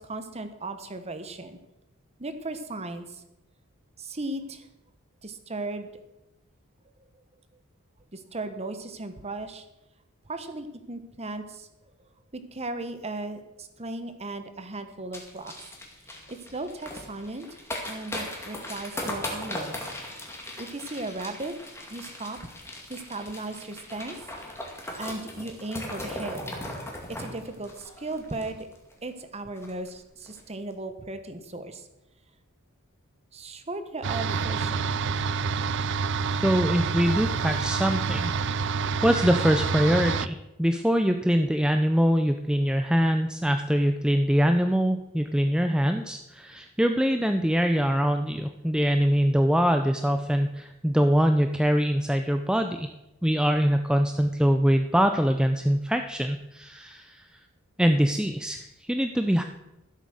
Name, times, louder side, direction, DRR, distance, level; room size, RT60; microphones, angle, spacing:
voice 1, 0.0-1.6 2.2-3.2 4.0-4.7 5.2-5.9 8.1-9.6 10.3-11.7 12.3-15.5 16.3-17.5 17.9-19.8 20.6-21.5 21.9-22.4 22.9-24.2 25.0-26.4 27.1-28.7 29.0-31.9 33.3-35.0, right 2 dB, 30° right, 9 dB, 1.2 m, -36 dB
sound 1, 15.1-28.9 29.2-29.3 29.6-29.9 30.2-30.4, left 1 dB, 10° left, 2.2 m, -38 dB
sound 2, 34.0-40.3, right 5 dB, 55° right, 0.5 m, -27 dB
voice 2, 36.4-38.3 39.0-52.9 53.2-57.3 57.8-59.4, equal, 5° right, 6 dB, 0.5 m, -23 dB
14.0 x 8.3 x 6.4 m, 0.93 s
head